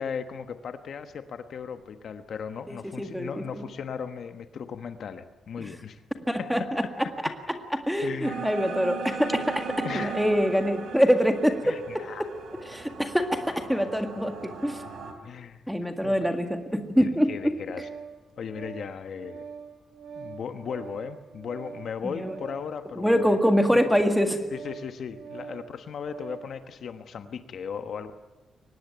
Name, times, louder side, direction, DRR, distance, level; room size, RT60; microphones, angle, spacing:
voice 1, 0.0-6.0 6.4-6.9 8.0-8.6 9.8-10.2 11.6-12.3 15.2-15.6 16.0-16.2 17.0-17.9 18.4-19.5 20.1-23.4 23.7-23.8 24.5-28.1, left 6 dB, 55° left, 9 dB, 1.3 m, -37 dB
voice 2, 2.7-3.6 5.6-5.7 6.3-6.8 7.7-11.8 12.6-14.3 14.6-14.8 15.7-17.5 22.0-22.4 23.0-24.4, equal, ahead, 6 dB, 1.9 m, -25 dB
sound 1, 8.2-15.1, right 5 dB, 55° right, 3.9 m, -38 dB
Organ, 17.1-26.6, right 6 dB, 85° right, 2.5 m, -44 dB
24.0 x 19.5 x 9.2 m, 1.1 s
wide cardioid pair, 175°, 0 cm